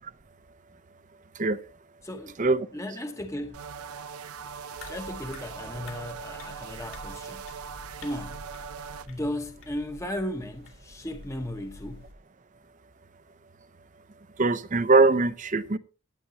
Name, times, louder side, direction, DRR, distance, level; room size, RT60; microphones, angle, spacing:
voice 1, 2.0-3.6 4.9-7.4 8.0-8.4 9.1-12.0, left 1 dB, 15° left, 0.9 m, -35 dB
sound 1, 3.5-9.1, right 6 dB, 85° right, 0.7 m, -41 dB
sound 2, 4.8-12.1, left 2 dB, 70° left, 3.0 m, -48 dB
voice 2, 14.4-15.8, right 3 dB, 35° right, 0.6 m, -21 dB
17.0 x 9.9 x 2.9 m
head